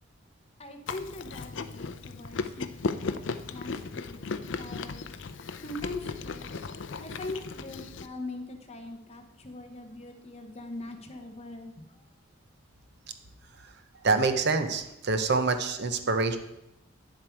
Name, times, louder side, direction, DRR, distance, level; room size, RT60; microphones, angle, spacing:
voice 1, 0.6-3.2 3.5-4.2 4.5-5.1 5.6-6.7 7.0-11.8, left 2 dB, 30° left, 4 dB, 1.0 m, -41 dB
Chewing mastication, 0.9-8.1, left 4 dB, 65° left, 0.5 m, -36 dB
voice 2, 14.0-16.4, right 3 dB, 55° right, 8 dB, 0.7 m, -26 dB
9.5 x 7.6 x 4.6 m, 0.88 s
head